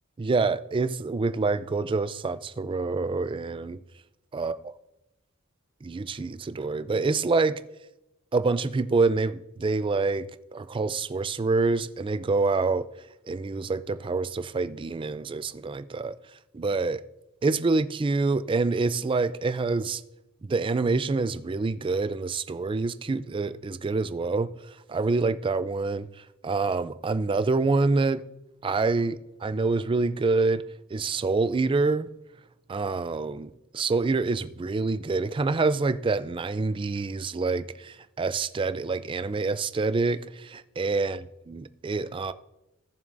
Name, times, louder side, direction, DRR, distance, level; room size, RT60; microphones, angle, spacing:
voice 1, 0.2-3.8 4.3-4.7 5.8-7.6 8.3-12.9 13.3-16.2 16.5-17.0 17.4-20.0 20.5-28.2 28.6-32.1 32.7-42.3, right 3 dB, 25° right, 0.3 m, -26 dB
17.0 x 7.2 x 2.6 m
head